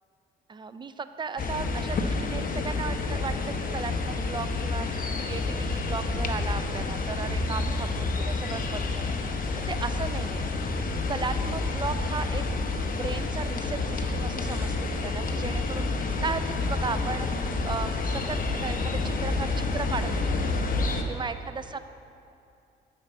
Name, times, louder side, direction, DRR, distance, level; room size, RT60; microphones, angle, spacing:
voice 1, 0.5-10.7 11.1-20.6 21.0-21.8, right 5 dB, 25° right, 11 dB, 0.4 m, -36 dB
sound 1, 1.4-21.0, left 3 dB, 45° left, 0.8 m, -29 dB
9.5 x 4.5 x 7.6 m, 2.6 s
cardioid pair, 90°, 20 cm